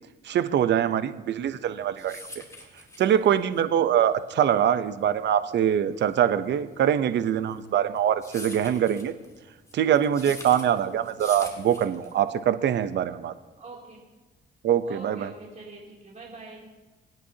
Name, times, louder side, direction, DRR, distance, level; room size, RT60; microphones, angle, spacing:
voice 1, 0.2-2.2 3.0-9.1 9.7-13.3 14.6-15.3, right 9 dB, 60° right, 12 dB, 0.7 m, -23 dB
sound 1, 1.6-12.4, left 2 dB, 15° left, 2.2 m, -44 dB
voice 2, 13.6-14.0 14.9-16.7, right 3 dB, 35° right, -4 dB, 2.9 m, -44 dB
24.0 x 9.2 x 2.8 m, 1.2 s
cardioid pair, 90°, 20 cm